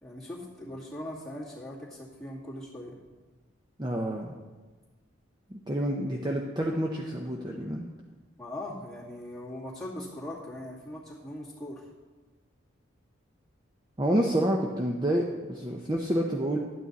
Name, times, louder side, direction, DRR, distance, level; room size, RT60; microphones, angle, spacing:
voice 1, 0.0-3.0 8.4-11.8, left 1 dB, 5° left, -7 dB, 2.2 m, -40 dB
voice 2, 3.8-4.4 5.5-7.9 14.0-16.6, right 1 dB, 20° right, 0 dB, 0.6 m, -28 dB
12.0 x 9.0 x 4.1 m, 1.3 s
head